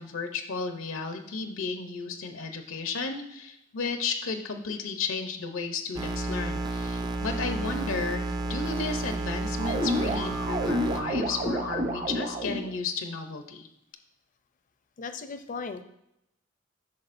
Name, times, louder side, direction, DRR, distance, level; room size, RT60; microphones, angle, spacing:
voice 1, 0.0-13.7, left 4 dB, 80° left, 6 dB, 0.7 m, -33 dB
sound 1, 5.9-11.0, right 2 dB, 20° right, 0.4 m, -31 dB
sound 2, 9.6-12.7, equal, 45° right, 0.8 m, -29 dB
voice 2, 15.0-15.8, left 4 dB, 40° left, 9 dB, 0.5 m, -36 dB
8.6 x 6.1 x 2.6 m, 0.82 s
head